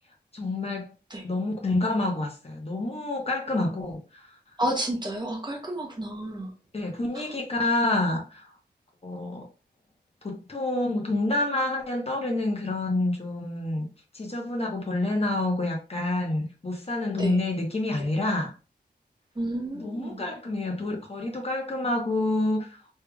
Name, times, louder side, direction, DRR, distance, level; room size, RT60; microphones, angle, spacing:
voice 1, 0.3-0.9 1.2-4.2 6.7-8.5 9.0-9.4 10.2-13.9 14.1-18.5 19.7-22.8, left 2 dB, 35° left, 1.1 m, -28 dB
voice 2, 4.6-6.5 17.2-17.4 19.4-20.2, right 1 dB, 25° right, 1.1 m, -30 dB
3.4 x 3.3 x 2.3 m
cardioid pair, 65°, 18 cm